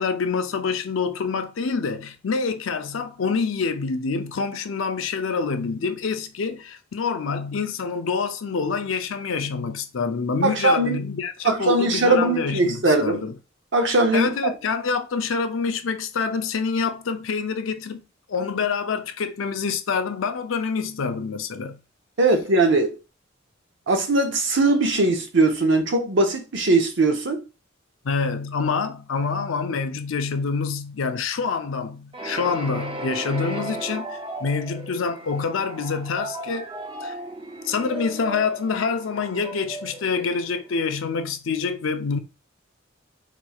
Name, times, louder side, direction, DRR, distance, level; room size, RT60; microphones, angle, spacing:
voice 1, 0.0-13.3 14.1-18.0 18.3-21.8 28.0-36.7 37.0-37.2 37.6-42.2, left 5 dB, 85° left, 0.5 m, -26 dB
voice 2, 10.4-11.0 11.4-13.2 13.7-14.3 22.2-23.0 23.9-27.4, right 2 dB, 65° right, 0.8 m, -20 dB
sound 1, 32.1-40.9, right 1 dB, 25° right, 0.6 m, -36 dB
4.3 x 3.0 x 2.3 m
head